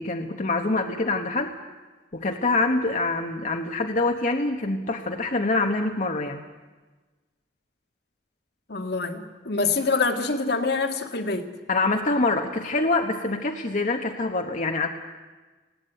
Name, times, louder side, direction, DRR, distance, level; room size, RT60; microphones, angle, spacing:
voice 1, 0.0-1.5 2.1-6.4 11.7-14.9, left 2 dB, 45° left, 3 dB, 1.2 m, -25 dB
voice 2, 8.7-11.5, left 4 dB, 65° left, 5 dB, 1.8 m, -25 dB
19.5 x 17.0 x 9.2 m, 1.3 s
head